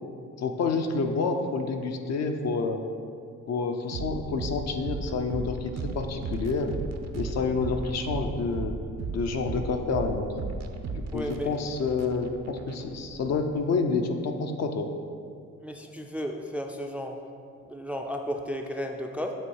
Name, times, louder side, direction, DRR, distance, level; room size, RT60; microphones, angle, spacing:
voice 1, 0.4-2.8 3.5-6.7 7.1-8.8 9.1-10.3 10.9-14.9, left 4 dB, 60° left, 4 dB, 0.7 m, -28 dB
sound 1, 3.9-13.5, right 4 dB, 60° right, 0.6 m, -36 dB
voice 2, 11.1-11.5 15.6-17.2 17.7-19.3, equal, 5° right, 3 dB, 0.4 m, -33 dB
8.3 x 3.2 x 4.6 m, 2.3 s
cardioid pair, 90°, 30 cm